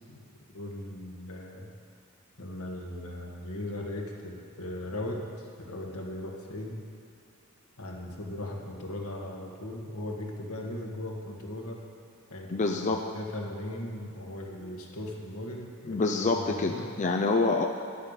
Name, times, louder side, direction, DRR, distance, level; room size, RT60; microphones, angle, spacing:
voice 1, 0.5-1.7 2.4-6.8 7.8-11.8 12.3-12.6 13.1-16.0 16.4-16.9, left 1 dB, 80° left, 0 dB, 1.6 m, -38 dB
voice 2, 12.5-13.0 15.9-17.7, left 3 dB, 35° left, 2 dB, 0.5 m, -26 dB
10.5 x 7.9 x 6.6 m, 2.4 s
head